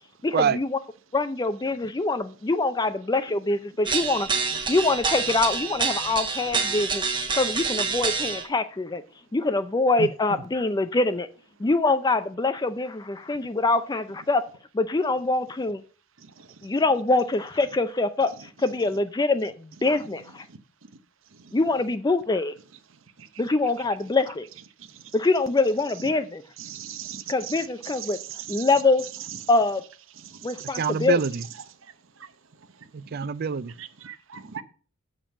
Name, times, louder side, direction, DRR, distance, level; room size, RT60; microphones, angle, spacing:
voice 1, 0.2-0.8 1.1-4.3 4.7-7.1 7.4-9.0 9.3-11.3 11.6-14.4 14.7-15.8 16.6-20.4 21.5-22.5 23.4-24.5 25.1-26.4 27.3-28.2 28.5-29.0 29.5-29.8 30.4-31.2, left 3 dB, 20° left, 0.4 m, -24 dB
sound 1, 3.9-8.5, right 5 dB, 20° right, 1.0 m, -27 dB
voice 2, 26.6-28.2 28.5-28.7 30.3-30.7 33.8-34.6, right 9 dB, 65° right, 0.8 m, -39 dB
voice 3, 30.8-31.4 32.9-33.7, right 6 dB, 45° right, 0.4 m, -25 dB
7.3 x 5.2 x 7.2 m
head